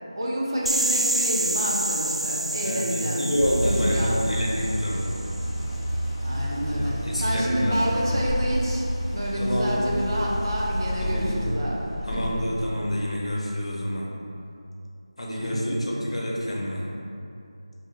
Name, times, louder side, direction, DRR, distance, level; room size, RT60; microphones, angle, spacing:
voice 1, 0.1-4.3 6.2-12.4 15.4-16.2, equal, 40° right, -4 dB, 0.6 m, -29 dB
sound 1, 0.7-5.4, right 1 dB, 85° right, 0.3 m, -28 dB
voice 2, 2.6-5.4 6.6-7.8 9.4-9.8 11.0-11.4 12.0-14.1 15.2-16.8, equal, 75° left, -3 dB, 0.8 m, -28 dB
sound 2, 3.4-12.6, equal, 5° left, 1.0 m, -29 dB
4.7 x 2.7 x 2.6 m, 2.6 s
figure-of-eight pair, 170°, 3 cm